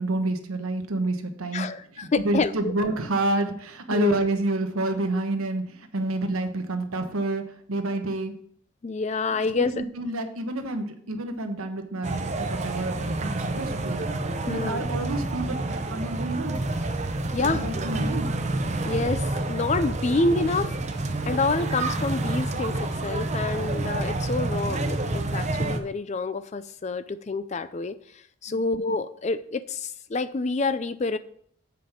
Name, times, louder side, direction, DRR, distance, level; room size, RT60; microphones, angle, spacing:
voice 1, 0.0-8.3 9.5-14.0 14.5-16.6 17.4-18.4 28.5-28.6, right 2 dB, 90° right, 6 dB, 1.2 m, -29 dB
voice 2, 1.5-2.7 3.9-4.2 8.8-9.7 14.5-14.9 17.3-17.6 18.8-20.8 21.3-31.2, left 3 dB, 30° left, 13 dB, 0.4 m, -28 dB
sound 1, 12.0-25.8, right 2 dB, 35° right, 0.7 m, -28 dB
7.6 x 5.2 x 5.8 m, 0.64 s
head